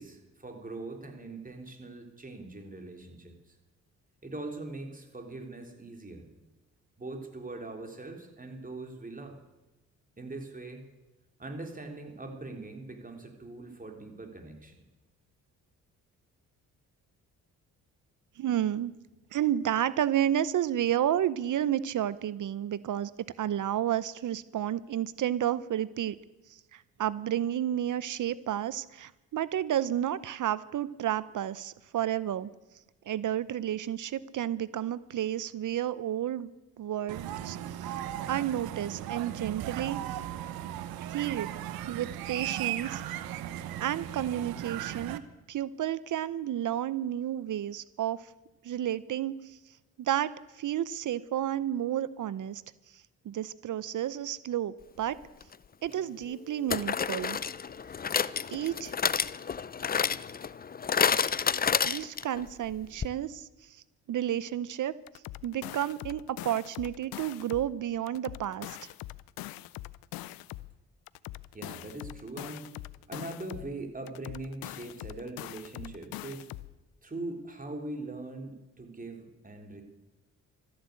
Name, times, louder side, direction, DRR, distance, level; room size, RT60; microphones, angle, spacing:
voice 1, 0.0-3.6 4.2-6.3 7.0-9.4 10.2-10.9 11.4-14.8 71.5-72.7 73.1-76.5 77.0-79.8, right 2 dB, 25° right, 3 dB, 3.7 m, -41 dB
voice 2, 18.4-18.9 19.3-23.1 23.4-26.2 26.5-32.5 33.1-36.5 36.8-37.9 38.3-40.0 41.0-41.5 41.9-43.0 43.8-45.2 45.5-48.3 48.6-49.6 50.0-52.6 52.9-55.2 55.8-57.4 58.5-58.9 61.9-64.9 65.4-68.8, right 11 dB, 60° right, 17 dB, 0.7 m, -31 dB
sound 1, 37.1-45.2, right 11 dB, 85° right, 0.9 m, -37 dB
sound 2, 55.4-55.5 56.7-62.4 62.7-62.8 63.0-63.1, left 6 dB, 25° left, 0.5 m, -29 dB
sound 3, 65.1-67.7 68.1-70.7 71.1-73.7 74.1-76.7, left 17 dB, 85° left, 0.6 m, -43 dB
13.5 x 10.5 x 8.3 m, 1.1 s
supercardioid pair, 60°, 35 cm